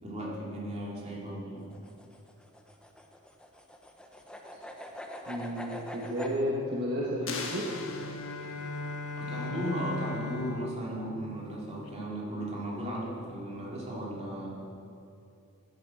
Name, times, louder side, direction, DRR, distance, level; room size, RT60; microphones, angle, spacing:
voice 1, 0.0-1.7 9.2-14.6, right 1 dB, 30° right, -4 dB, 2.9 m, -36 dB
sound 1, 1.6-6.4, equal, 5° left, 0.9 m, -43 dB
voice 2, 5.3-7.7, equal, 50° right, -4 dB, 1.5 m, -32 dB
sound 2, 7.2-11.9, left 3 dB, 90° left, 1.0 m, -39 dB
sound 3, 7.3-8.8, left 4 dB, 65° left, 1.5 m, -40 dB
10.5 x 10.5 x 7.8 m, 2.6 s
head